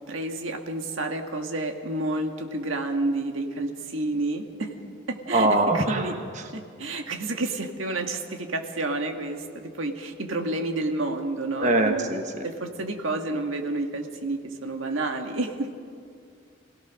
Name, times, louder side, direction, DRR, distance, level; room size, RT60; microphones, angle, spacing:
voice 1, 0.1-4.7 5.1-6.1 6.5-12.1 12.4-15.7, right 2 dB, 75° right, 4 dB, 1.8 m, -30 dB
voice 2, 5.3-6.0 11.6-12.5, right 2 dB, 35° right, 4 dB, 1.3 m, -22 dB
26.5 x 17.0 x 6.3 m, 2.3 s
head